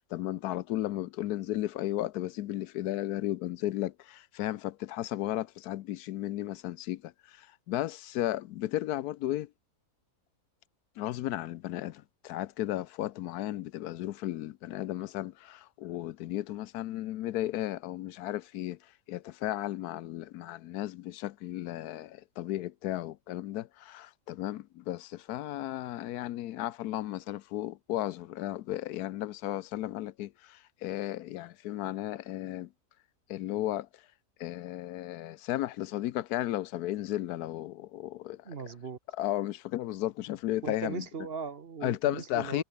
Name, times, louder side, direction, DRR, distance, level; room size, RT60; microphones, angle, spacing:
voice 1, 0.1-9.5 11.0-18.8 19.1-32.7 33.3-33.9 34.4-38.4 39.2-41.0 41.8-42.6, left 14 dB, 85° left, 1.1 m, -34 dB
voice 2, 38.4-39.0 40.6-42.6, right 5 dB, 45° right, 1.1 m, -38 dB
omnidirectional pair, 1.6 m